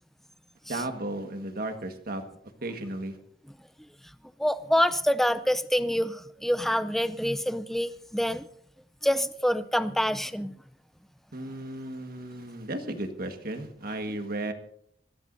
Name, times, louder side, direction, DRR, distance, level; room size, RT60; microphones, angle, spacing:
voice 1, 0.7-2.2 2.6-3.2 11.3-14.5, right 1 dB, 60° right, 6 dB, 1.6 m, -34 dB
voice 2, 4.4-8.5 9.0-10.5, equal, ahead, 13 dB, 0.5 m, -26 dB
26.5 x 14.5 x 2.7 m, 0.68 s
head